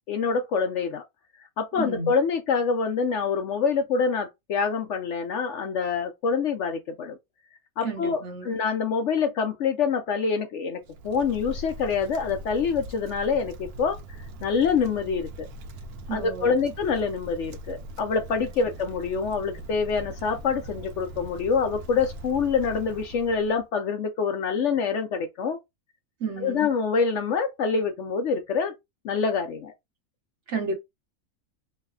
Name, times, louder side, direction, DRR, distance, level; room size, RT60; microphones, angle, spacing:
voice 1, 0.1-1.0 1.6-7.2 7.8-14.0 14.4-15.5 16.1-25.6 26.4-28.7 29.0-29.7, left 5 dB, 65° left, 0.8 m, -26 dB
voice 2, 1.8-2.1 7.8-8.6 16.1-16.6 26.2-26.7 30.5-30.7, right 4 dB, 55° right, 1.1 m, -32 dB
Wind, 10.8-23.6, right 1 dB, 85° right, 1.1 m, -41 dB
3.1 x 2.1 x 3.5 m
omnidirectional pair, 1.6 m